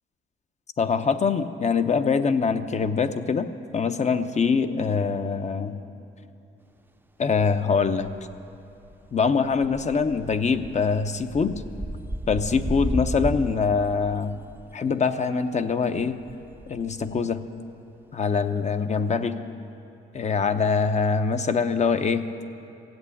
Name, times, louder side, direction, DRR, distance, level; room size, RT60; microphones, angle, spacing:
voice 1, 0.8-5.8 7.2-8.1 9.1-11.5 12.3-14.3 14.7-16.2 16.7-17.4 18.1-19.4 20.1-22.3, left 5 dB, 35° left, 9 dB, 0.8 m, -24 dB
sound 1, 7.4-7.5 7.7-8.5 8.8-14.8 15.8-17.4 18.9-19.0, right 1 dB, 10° right, 0.6 m, -34 dB
16.5 x 8.1 x 8.3 m, 2.9 s
cardioid pair, 90°, 20 cm